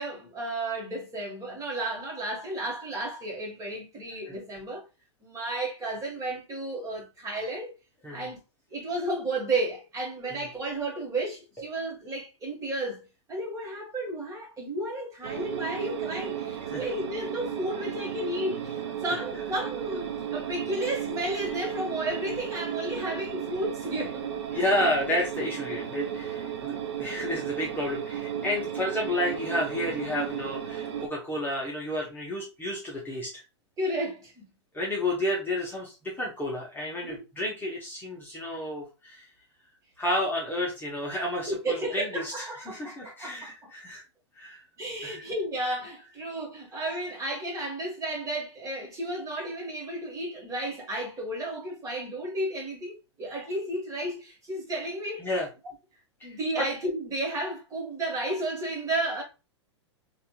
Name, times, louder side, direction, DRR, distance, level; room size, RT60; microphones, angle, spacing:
voice 1, 0.0-4.8 5.2-7.7 8.1-8.4 8.7-13.0 13.3-24.2 33.8-34.4 37.0-37.2 41.5-43.7 44.8-55.2 56.2-59.2, right 1 dB, 20° right, 1.5 m, -33 dB
sound 1, 15.2-31.1, right 9 dB, 65° right, 0.6 m, -34 dB
voice 2, 24.5-33.4 34.7-39.3 40.0-44.0 44.4-44.6 45.0-45.2 55.2-55.5 56.2-56.6, left 1 dB, 15° left, 1.0 m, -31 dB
4.1 x 2.5 x 2.3 m
hypercardioid pair, 105°, 15 cm